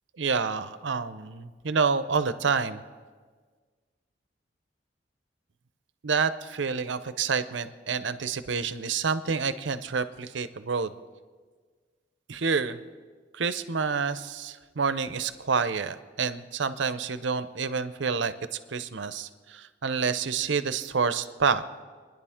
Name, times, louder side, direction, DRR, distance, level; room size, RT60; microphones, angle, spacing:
voice 1, 0.2-2.8 6.0-10.9 12.3-12.8 13.3-18.3 18.7-21.6, right 5 dB, 80° right, 12 dB, 0.7 m, -28 dB
29.0 x 10.5 x 3.6 m, 1.5 s
head